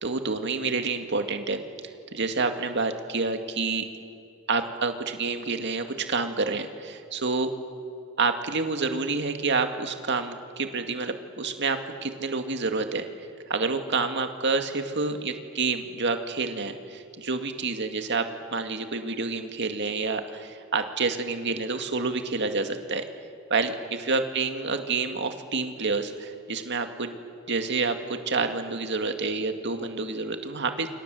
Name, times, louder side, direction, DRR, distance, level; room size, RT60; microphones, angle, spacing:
voice 1, 0.0-3.9 4.5-7.5 8.2-23.0 23.5-27.1 27.5-30.9, right 4 dB, 55° right, 6 dB, 2.2 m, -28 dB
29.5 x 26.0 x 7.8 m, 2.5 s
head